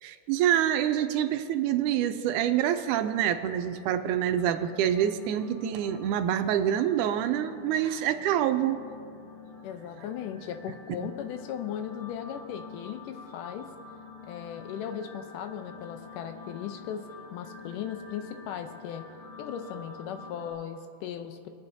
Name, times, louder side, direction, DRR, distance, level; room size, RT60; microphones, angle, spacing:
voice 1, 0.0-8.8 11.0-11.1, right 10 dB, 80° right, 9 dB, 2.0 m, -26 dB
sound 1, 3.3-20.5, left 4 dB, 50° left, 4.3 m, -48 dB
voice 2, 9.6-13.7 14.2-19.0 19.4-21.5, left 9 dB, 85° left, 7 dB, 2.3 m, -37 dB
24.5 x 9.0 x 2.7 m, 2.3 s
omnidirectional pair, 3.7 m